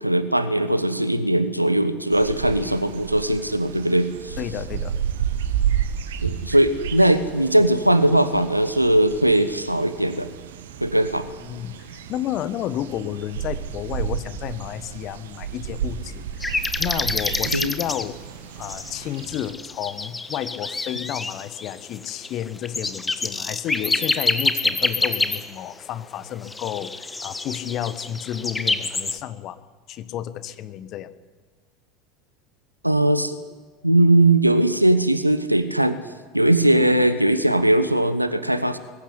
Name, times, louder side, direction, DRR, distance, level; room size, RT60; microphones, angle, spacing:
voice 1, 0.0-4.4 6.2-10.3 10.8-11.3 17.5-17.7 32.8-33.4 33.8-36.0 36.3-38.8, right 1 dB, 90° right, 12 dB, 0.9 m, -19 dB
sound 1, 2.1-19.5, right 9 dB, 65° right, 1.4 m, -32 dB
voice 2, 4.4-4.9 11.4-16.5 16.8-18.2 18.6-29.6 29.9-31.1, left 11 dB, 40° left, 13 dB, 1.3 m, -31 dB
sound 2, 16.4-18.1 18.6-25.7 26.4-29.2, left 3 dB, 15° left, 1.4 m, -27 dB
21.5 x 15.5 x 9.8 m, 1.5 s
figure-of-eight pair, 75°, 0 cm